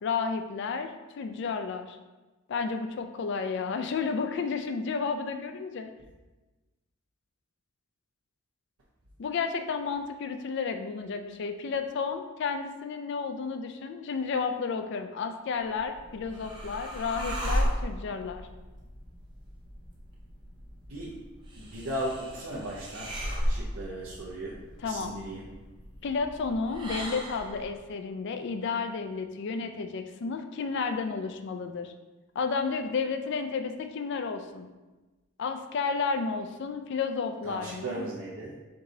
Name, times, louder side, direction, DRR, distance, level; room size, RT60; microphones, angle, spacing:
voice 1, 0.0-2.0 2.5-5.9 9.2-18.5 24.8-25.1 26.0-31.9 32.4-34.7 35.4-38.0, left 5 dB, 55° left, 7 dB, 0.3 m, -32 dB
sound 1, 15.7-27.7, equal, 20° right, 0.6 m, -36 dB
voice 2, 20.9-21.3 21.6-23.2 23.4-25.6 37.4-38.6, right 1 dB, 75° right, -7 dB, 0.7 m, -37 dB
4.6 x 3.8 x 2.7 m, 1.2 s
head